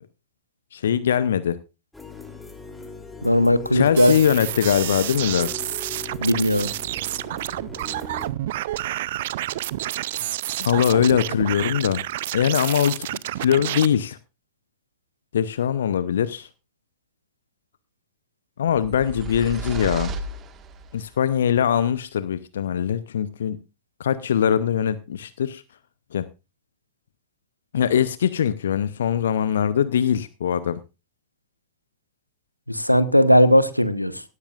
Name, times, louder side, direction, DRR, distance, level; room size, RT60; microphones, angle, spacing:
voice 1, 0.7-1.6 3.7-5.5 10.6-12.0 12.3-14.2 15.3-16.5 18.6-20.1 20.9-23.6 24.0-25.6 26.1-26.3 27.7-30.8, left 9 dB, 65° left, 0.7 m, -22 dB
sound 1, 1.9-8.3, left 5 dB, 5° left, 3.1 m, -40 dB
voice 2, 3.2-4.1 6.2-6.7 32.7-34.2, equal, 90° left, 1.0 m, -18 dB
sound 2, 4.0-13.9, right 15 dB, 55° right, 0.5 m, -29 dB
sound 3, 18.7-21.1, right 3 dB, 30° right, 1.6 m, -34 dB
17.5 x 13.0 x 2.5 m
figure-of-eight pair, 90°, 0 cm